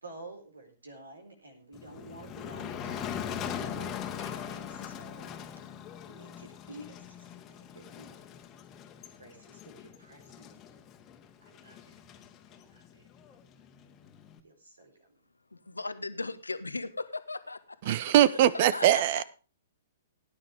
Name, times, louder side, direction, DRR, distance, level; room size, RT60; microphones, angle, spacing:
voice 1, 0.0-5.4 6.0-8.3 9.2-10.5 11.4-12.0 12.5-13.1 14.4-15.2, right 1 dB, 80° right, 4.0 m, -50 dB
Motor vehicle (road), 1.7-14.4, left 8 dB, 25° left, 1.7 m, -41 dB
voice 2, 15.5-17.9 18.5-19.2, left 3 dB, 85° left, 1.1 m, -37 dB
voice 3, 17.9-19.2, right 12 dB, 45° right, 0.7 m, -22 dB
17.5 x 9.7 x 3.5 m
figure-of-eight pair, 115°, 0 cm